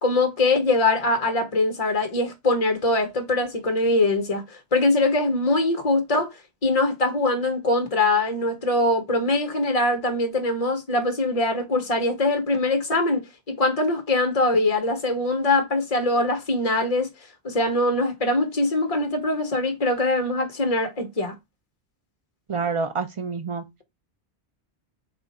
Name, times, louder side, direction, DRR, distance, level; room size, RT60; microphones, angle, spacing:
voice 1, 0.0-6.3 6.6-17.1 17.4-21.3, left 2 dB, 35° left, 1.0 m, -22 dB
voice 2, 22.5-23.6, right 5 dB, 50° right, 0.3 m, -27 dB
3.5 x 2.4 x 4.1 m
omnidirectional pair, 1.1 m